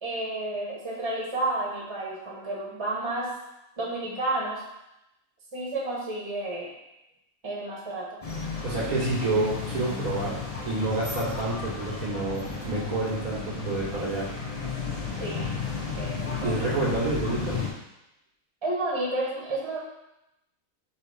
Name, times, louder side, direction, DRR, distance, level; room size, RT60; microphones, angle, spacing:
voice 1, 0.0-3.3 3.8-4.6 5.5-6.7 7.4-8.2 8.8-9.0 15.2-15.4 16.0-16.5 18.6-19.8, right 2 dB, 20° right, -4 dB, 1.3 m, -31 dB
sound 1, 8.2-17.7, left 4 dB, 30° left, 0.9 m, -33 dB
voice 2, 8.6-10.4 10.7-14.3 16.4-17.6, right 2 dB, 85° right, -5 dB, 2.1 m, -28 dB
5.8 x 3.3 x 5.0 m, 0.88 s
omnidirectional pair, 1.5 m